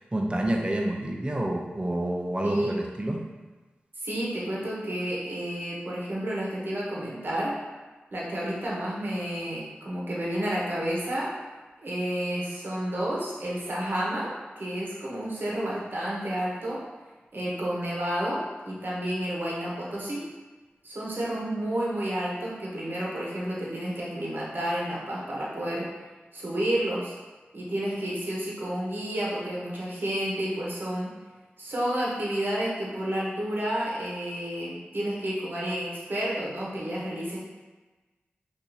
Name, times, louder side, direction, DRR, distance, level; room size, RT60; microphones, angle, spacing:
voice 1, 0.1-3.2, right 1 dB, 25° right, 0 dB, 0.6 m, -28 dB
voice 2, 4.0-7.6 8.1-11.3 11.8-16.8 17.3-20.2 20.8-25.9 26.3-27.1 27.5-31.1 31.6-37.4, right 1 dB, 60° right, -5 dB, 1.0 m, -30 dB
2.8 x 2.6 x 3.9 m, 1.3 s
cardioid pair, 45°, 4 cm